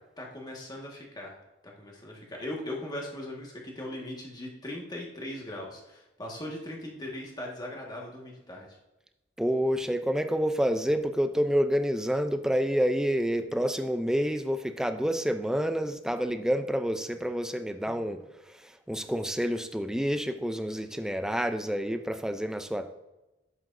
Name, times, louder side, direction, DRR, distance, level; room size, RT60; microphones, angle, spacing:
voice 1, 0.2-1.4 1.6-8.8 17.8-18.0, left 1 dB, 20° left, -1 dB, 1.6 m, -39 dB
voice 2, 9.4-18.2 18.6-22.9, equal, 5° right, 8 dB, 0.4 m, -28 dB
11.0 x 7.8 x 2.6 m, 1.0 s
head